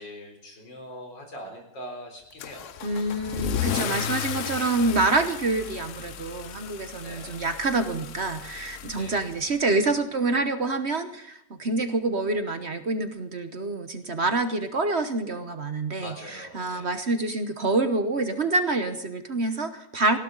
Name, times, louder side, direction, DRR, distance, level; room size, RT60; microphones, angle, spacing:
voice 1, 0.0-2.7 7.0-7.4 8.9-9.2 16.0-17.0, equal, 90° left, 3 dB, 4.7 m, -42 dB
Car / Engine starting / Accelerating revving vroom, 2.4-9.7, left 9 dB, 60° left, 0.9 m, -34 dB
voice 2, 2.8-20.2, right 2 dB, 45° right, 9 dB, 1.2 m, -27 dB
19.5 x 16.5 x 4.0 m, 0.79 s
omnidirectional pair, 1.9 m